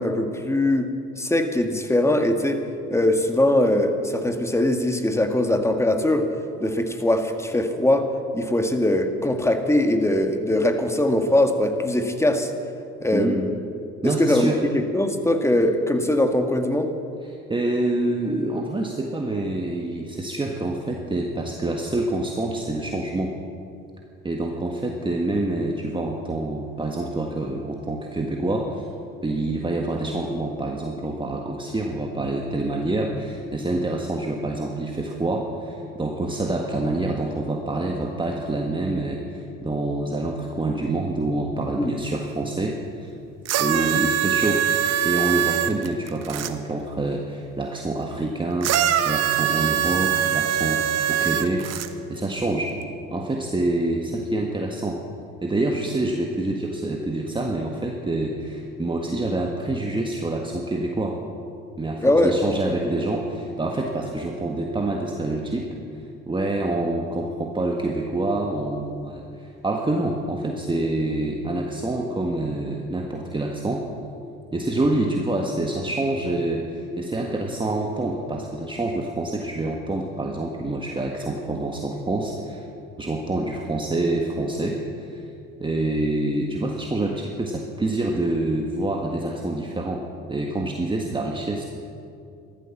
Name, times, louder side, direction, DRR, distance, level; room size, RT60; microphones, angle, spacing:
voice 1, 0.0-6.3 6.6-12.5 13.0-13.5 14.0-16.9 41.8-42.0 62.0-62.4, left 1 dB, 10° left, 6 dB, 1.8 m, -21 dB
voice 2, 14.0-14.6 17.3-23.3 24.2-28.9 29.2-43.1 43.6-44.6 45.0-48.7 49.0-50.8 51.1-52.7 53.1-55.0 55.4-61.2 61.8-73.9 74.5-82.6 83.0-85.2 85.6-90.0 90.3-91.6, right 2 dB, 15° right, 1 dB, 1.6 m, -26 dB
sound 1, 43.4-46.5 48.6-51.9 52.8-52.9, right 10 dB, 60° right, 1.1 m, -23 dB
14.5 x 13.0 x 7.3 m, 2.6 s
hypercardioid pair, 70°, 30 cm